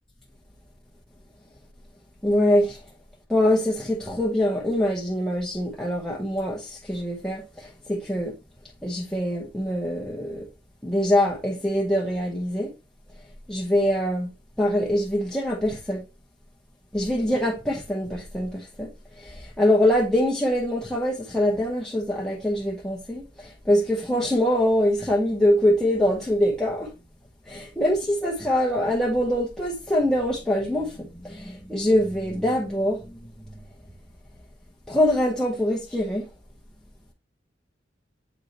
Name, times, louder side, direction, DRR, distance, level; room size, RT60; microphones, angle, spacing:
voice 1, 2.2-2.8 3.3-8.3 8.8-10.5 10.8-12.7 13.5-14.3 14.6-16.0 16.9-18.9 19.2-26.9 27.5-33.3 34.9-36.2, left 1 dB, 5° left, 0.9 m, -24 dB
7.9 x 4.8 x 2.8 m
head